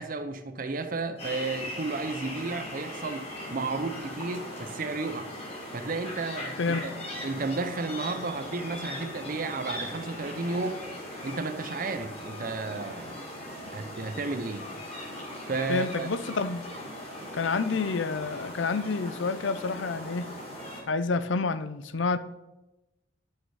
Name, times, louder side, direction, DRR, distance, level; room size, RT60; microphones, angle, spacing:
voice 1, 0.0-5.3 5.7-6.9 7.2-10.9 11.2-13.2 13.7-14.6 15.5-16.1, right 3 dB, 45° right, 0.6 m, -33 dB
sound 1, 1.2-20.8, left 1 dB, 30° left, 2.5 m, -39 dB
voice 2, 15.7-16.6 17.3-20.3 20.9-22.2, left 4 dB, 75° left, 0.6 m, -28 dB
11.0 x 6.4 x 4.7 m
head